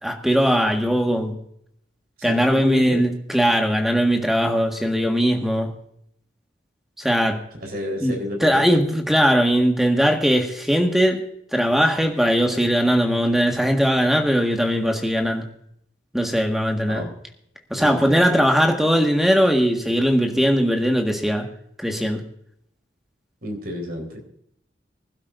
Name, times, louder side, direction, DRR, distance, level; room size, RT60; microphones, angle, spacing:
voice 1, 0.0-1.3 2.2-5.7 7.0-7.4 8.0-8.1 8.4-11.2 11.5-15.5 16.1-17.1 17.7-21.5 21.8-22.2, equal, ahead, 3 dB, 1.7 m, -20 dB
voice 2, 2.2-3.0 7.6-8.7 16.9-17.1 17.8-18.8 23.4-24.2, equal, 55° right, 3 dB, 4.3 m, -31 dB
24.5 x 12.0 x 2.6 m, 0.72 s
head